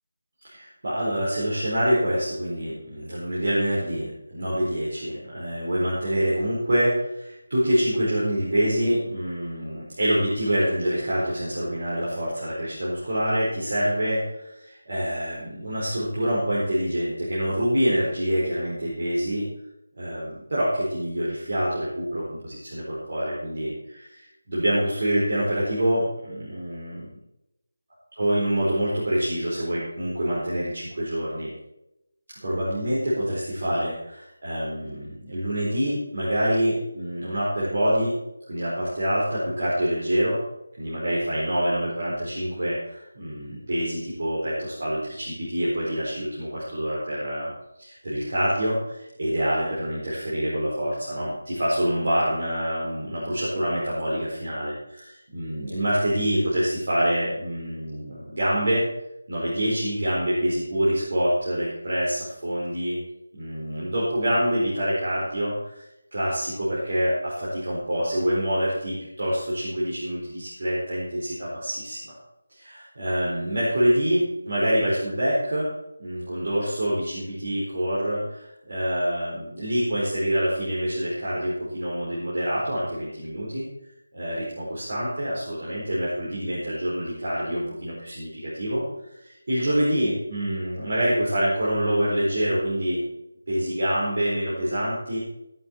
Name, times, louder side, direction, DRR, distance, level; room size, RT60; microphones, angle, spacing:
voice 1, 0.4-19.4 20.0-27.1 28.1-31.5 32.4-38.1 38.5-40.4 40.8-47.5 47.8-58.8 59.3-63.0 63.3-65.8 66.1-72.1 72.5-75.7 76.0-83.6 84.1-88.8 89.2-93.0 93.5-95.2, equal, 40° right, -8 dB, 4.4 m, -26 dB
16.0 x 9.1 x 4.5 m, 0.87 s
figure-of-eight pair, 180°, 0 cm